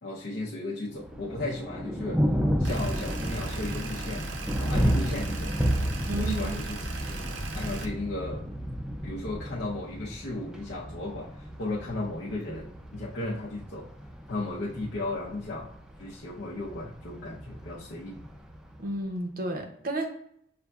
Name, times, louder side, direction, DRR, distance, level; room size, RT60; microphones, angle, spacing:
voice 1, 0.0-2.3 2.6-5.6 6.2-7.2 7.5-8.5 9.0-13.9 14.3-15.7 16.0-18.2, left 2 dB, 70° left, -6 dB, 0.7 m, -35 dB
Thunder, 0.9-18.9, equal, 5° right, 0.4 m, -32 dB
sound 1, 2.6-7.9, right 2 dB, 85° right, 0.6 m, -37 dB
voice 2, 6.1-6.6 18.8-20.1, right 2 dB, 45° right, 4 dB, 0.6 m, -32 dB
6.5 x 2.5 x 2.3 m, 0.70 s
head